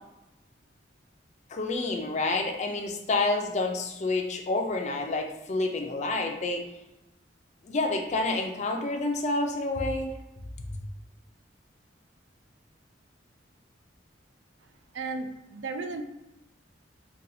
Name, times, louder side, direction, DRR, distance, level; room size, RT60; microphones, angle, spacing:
voice 1, 1.5-6.7 7.6-10.1 10.7-10.8, left 2 dB, 40° left, 3 dB, 0.4 m, -28 dB
voice 2, 14.9-16.0, right 3 dB, 70° right, 7 dB, 0.4 m, -34 dB
4.0 x 2.3 x 2.6 m, 0.91 s
head